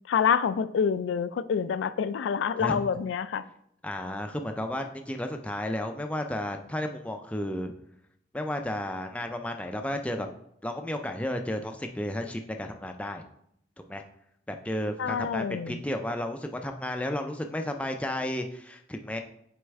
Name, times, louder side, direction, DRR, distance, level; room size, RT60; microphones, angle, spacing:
voice 1, 0.1-3.4 15.0-15.8, left 7 dB, 85° left, 13 dB, 0.3 m, -27 dB
voice 2, 3.8-7.7 8.3-10.3 10.6-13.2 13.9-14.0 14.5-19.2, left 1 dB, 5° left, 4 dB, 0.3 m, -33 dB
6.4 x 4.3 x 3.5 m, 0.73 s
head